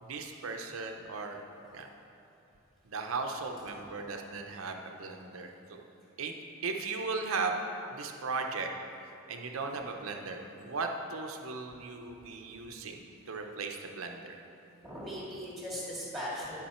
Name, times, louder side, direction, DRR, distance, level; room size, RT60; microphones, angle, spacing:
voice 1, 0.0-1.4 1.7-1.9 2.8-5.8 6.2-6.3 6.6-7.6 7.9-8.7 9.3-14.3, right 4 dB, 75° right, 4 dB, 0.7 m, -37 dB
voice 2, 14.8-16.6, equal, ahead, -7 dB, 2.2 m, -39 dB
11.5 x 5.3 x 4.3 m, 2.8 s
head